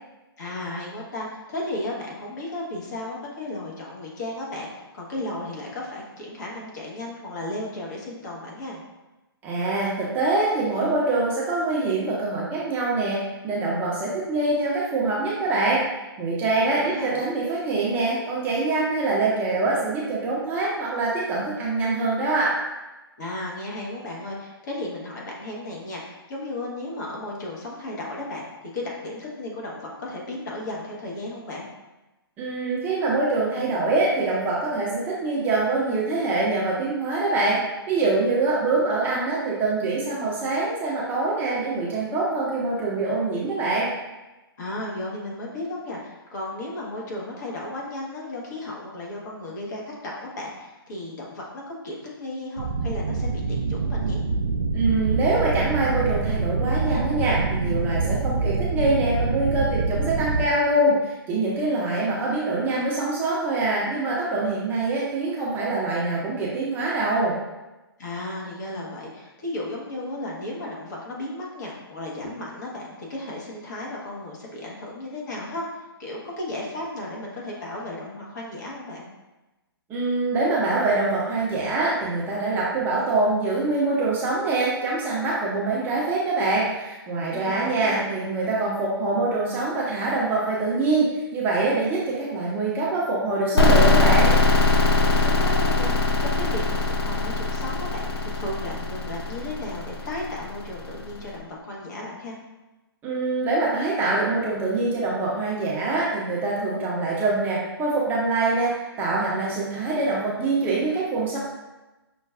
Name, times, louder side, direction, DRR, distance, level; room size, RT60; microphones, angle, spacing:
voice 1, 0.4-8.8 16.5-17.2 23.2-31.7 44.6-54.2 68.0-79.1 87.3-88.1 95.0-102.4, left 1 dB, 45° left, -3 dB, 1.0 m, -34 dB
voice 2, 9.4-15.8 16.2-22.5 32.4-37.6 37.9-43.9 54.7-67.3 79.9-94.3 103.0-108.7 109.0-111.4, right 2 dB, 15° right, -6 dB, 0.6 m, -24 dB
sound 1, 52.6-60.5, right 3 dB, 80° right, 0.4 m, -25 dB
sound 2, 93.6-101.1, left 2 dB, 75° left, 0.5 m, -21 dB
5.6 x 2.3 x 2.3 m, 1.1 s
figure-of-eight pair, 130°, 13 cm